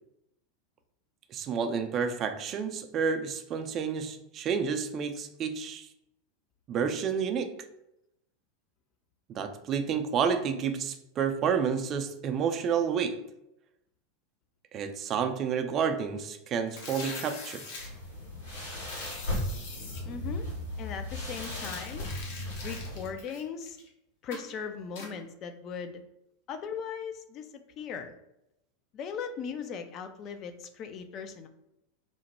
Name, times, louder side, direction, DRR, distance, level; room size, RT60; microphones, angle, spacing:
voice 1, 1.3-5.9 6.7-7.5 9.3-13.2 14.7-17.6, right 6 dB, 40° right, 8 dB, 0.4 m, -30 dB
sound 1, 16.7-17.9 18.8-20.0 21.2-23.9 24.3-24.5 25.0-25.1, left 3 dB, 65° left, 0.8 m, -43 dB
sound 2, 17.8-23.0, left 1 dB, 85° left, 1.3 m, -36 dB
voice 2, 20.0-20.5 20.8-22.1 22.6-23.8 24.2-26.0 26.5-28.1 28.9-31.5, left 6 dB, 45° left, 7 dB, 0.4 m, -38 dB
3.0 x 2.1 x 4.1 m, 0.84 s
hypercardioid pair, 90°, 0 cm